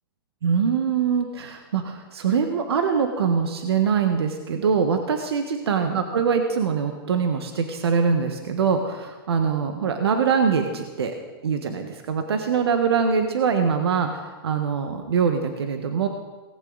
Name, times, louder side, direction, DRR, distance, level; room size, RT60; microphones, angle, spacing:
voice 1, 0.4-11.1 11.4-16.1, right 6 dB, 85° right, 6 dB, 1.4 m, -23 dB
18.0 x 15.0 x 4.1 m, 1.3 s
hypercardioid pair, 130°, 13 cm